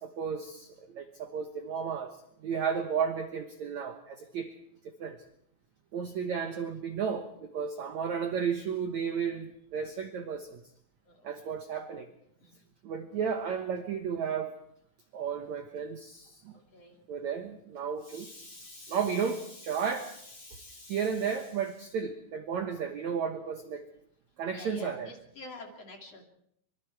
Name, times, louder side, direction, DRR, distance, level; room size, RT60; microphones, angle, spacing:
voice 1, 0.0-4.6 4.8-5.2 5.9-10.6 11.2-12.1 12.8-14.5 15.1-16.5 17.1-23.8 24.4-25.1, right 6 dB, 65° right, 6 dB, 1.9 m, -33 dB
voice 2, 11.0-11.6 12.4-12.5 16.5-17.1 19.0-19.2 24.5-26.2, left 2 dB, 40° left, 3 dB, 3.3 m, -48 dB
25.5 x 24.0 x 4.7 m, 0.72 s
omnidirectional pair, 4.8 m